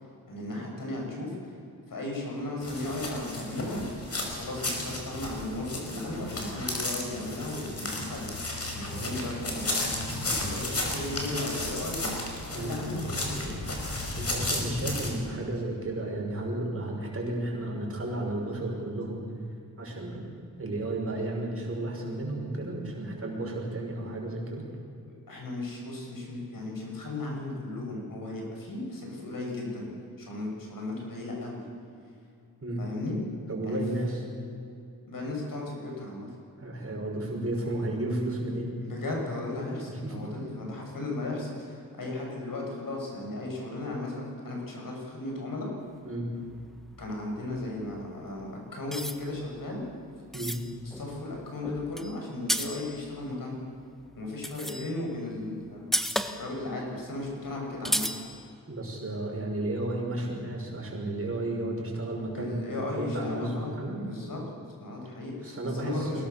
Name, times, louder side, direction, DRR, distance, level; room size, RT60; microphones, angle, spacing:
voice 1, 0.3-1.4 1.9-3.8 4.3-9.9 10.4-12.1 12.4-13.7 25.3-29.9 30.2-31.7 32.8-33.2 33.6-33.8 35.1-36.3 38.8-45.7 47.0-49.8 50.8-53.6 54.2-55.9 56.4-58.2 62.4-64.4 64.8-66.3, left 2 dB, 60° left, -1 dB, 7.0 m, -36 dB
sound 1, 2.6-15.1, left 2 dB, 40° left, 5.4 m, -33 dB
voice 2, 14.2-19.2 19.8-20.3 20.6-24.7 32.6-32.8 33.5-34.2 36.6-38.7 39.9-40.1 46.0-46.3 50.3-50.6 58.7-64.0 65.4-66.3, right 1 dB, 35° right, -1 dB, 6.1 m, -33 dB
sound 2, 46.4-48.5 48.9-53.4 54.0-55.2 55.4-55.5 55.8-56.7 57.0-57.1 57.3-57.4 57.9-58.5, equal, ahead, 1.3 m, -34 dB
23.0 x 18.0 x 7.2 m, 2.5 s
cardioid pair, 75°, 37 cm